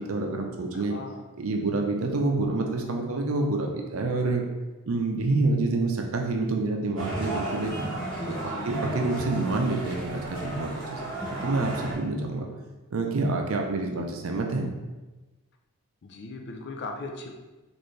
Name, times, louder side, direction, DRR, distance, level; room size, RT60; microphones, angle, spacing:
voice 1, 0.0-1.0 1.4-4.4 4.9-7.9 8.3-8.4 8.6-12.5 12.9-14.7, right 3 dB, 70° right, 3 dB, 0.5 m, -27 dB
voice 2, 0.7-1.2 8.3-8.7 14.0-14.1 16.0-17.3, left 3 dB, 50° left, 4 dB, 0.4 m, -39 dB
sound 1, 7.0-11.9, right 1 dB, 20° left, 1.2 m, -33 dB
4.2 x 2.6 x 3.2 m, 1.2 s
head